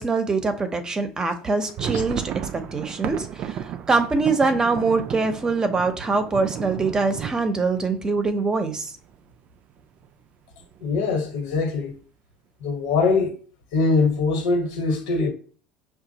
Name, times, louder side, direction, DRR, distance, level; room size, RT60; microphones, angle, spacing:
voice 1, 0.0-2.2 2.7-8.9, right 3 dB, 25° right, 0.7 m, -23 dB
sound 1, 1.4-9.1 9.5-9.6 9.8-10.1 10.6-11.1, right 9 dB, 50° right, 0.3 m, -34 dB
voice 2, 10.8-11.9 12.6-13.3 13.7-15.3, left 4 dB, 85° left, 1.4 m, -22 dB
5.8 x 2.4 x 2.8 m
supercardioid pair, 100°, 3 cm